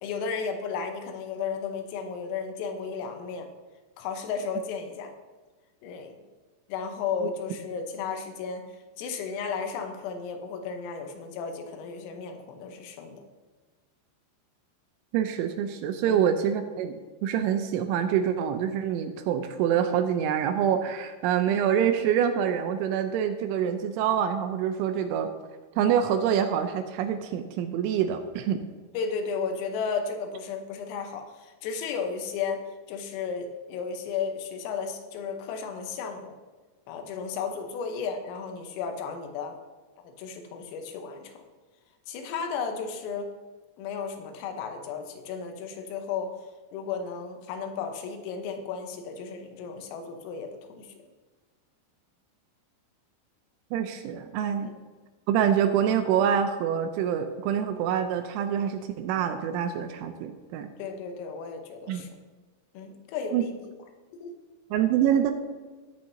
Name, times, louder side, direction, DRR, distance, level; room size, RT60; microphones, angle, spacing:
voice 1, 0.0-3.5 4.0-5.1 5.8-6.2 6.7-8.7 9.0-13.2 16.1-16.3 29.0-32.6 32.9-36.4 36.9-39.6 40.2-41.3 42.1-43.3 43.8-46.3 46.7-50.9 54.6-54.8 60.8-62.1 62.8-63.7 64.1-64.4, left 5 dB, 85° left, 5 dB, 3.7 m, -34 dB
voice 2, 15.1-16.9 17.2-25.3 25.8-28.6 53.7-54.7 55.3-60.7 61.9-62.1 63.3-63.5 64.7-65.3, right 9 dB, 80° right, 8 dB, 2.9 m, -26 dB
14.0 x 10.5 x 2.7 m, 1.3 s
omnidirectional pair, 5.8 m